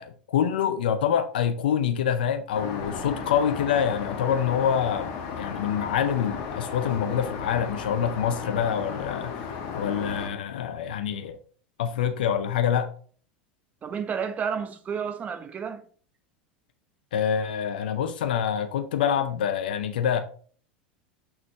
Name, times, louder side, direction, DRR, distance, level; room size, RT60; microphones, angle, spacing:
voice 1, 0.0-5.1 5.4-9.4 9.7-11.4 11.8-12.9 17.1-20.2, left 8 dB, 75° left, 0.7 m, -26 dB
Aircraft, 2.5-10.3, left 6 dB, 55° left, 1.8 m, -35 dB
voice 2, 13.8-15.8, right 7 dB, 30° right, 1.2 m, -31 dB
6.4 x 6.1 x 3.0 m
hypercardioid pair, 90°, 5 cm